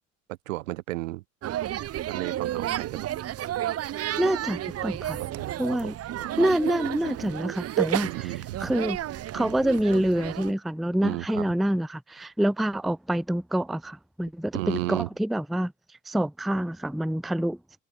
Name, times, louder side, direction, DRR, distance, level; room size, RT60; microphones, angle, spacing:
voice 1, 0.3-1.2 2.1-3.1 5.2-6.5 8.0-8.8 11.0-11.5 14.5-15.1, right 18 dB, 75° right, 2.5 m, -34 dB
sound 1, 1.4-10.5, right 12 dB, 35° right, 1.0 m, -32 dB
voice 2, 4.2-5.2 5.6-5.9 6.4-8.3 8.6-9.0 9.3-15.7 16.1-17.6, right 1 dB, ahead, 0.6 m, -26 dB
open air
hypercardioid pair, 75°, 40 cm